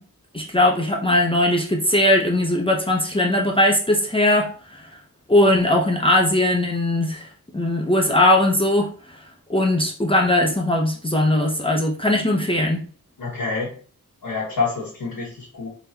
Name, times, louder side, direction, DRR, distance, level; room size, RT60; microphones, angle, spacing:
voice 1, 0.3-4.8 5.3-7.3 7.5-8.9 9.5-12.8, left 1 dB, 15° left, 0 dB, 0.7 m, -19 dB
voice 2, 13.2-13.7 14.2-15.7, left 4 dB, 75° left, -7 dB, 1.4 m, -27 dB
3.9 x 3.4 x 2.8 m, 0.42 s
wide cardioid pair, 70°, 35 cm